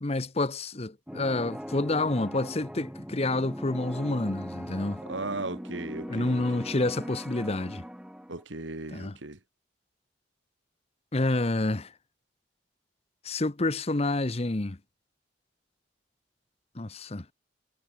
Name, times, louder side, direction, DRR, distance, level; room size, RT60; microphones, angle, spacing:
voice 1, 0.0-5.0 6.1-7.8 8.9-9.2 11.1-11.9 13.2-14.8 16.8-17.2, left 2 dB, 35° left, 0.9 m, -28 dB
sound 1, 1.1-8.4, equal, 5° right, 3.4 m, -40 dB
voice 2, 5.1-6.4 8.3-9.4, right 2 dB, 85° right, 2.2 m, -36 dB
head